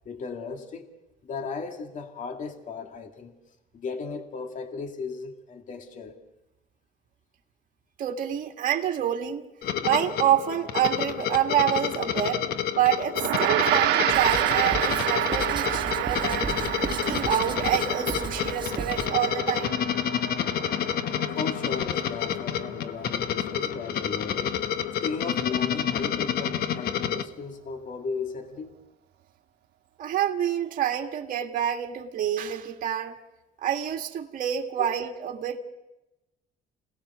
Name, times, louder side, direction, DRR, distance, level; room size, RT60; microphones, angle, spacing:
voice 1, 0.1-0.9 1.2-3.3 3.7-6.2 21.4-24.5 25.0-28.7 34.8-34.9, left 4 dB, 50° left, 2.3 m, -36 dB
voice 2, 8.0-9.5 9.8-12.5 12.7-16.5 16.9-19.8 30.0-33.2 33.6-35.6, right 10 dB, 55° right, 1.9 m, -27 dB
sound 1, 9.6-27.2, left 9 dB, 65° left, 1.1 m, -29 dB
Gong, 13.1-22.8, right 13 dB, 80° right, 1.2 m, -29 dB
Writing, 14.1-19.1, right 5 dB, 30° right, 1.1 m, -36 dB
27.5 x 18.5 x 6.9 m
cardioid pair, 110°, 17 cm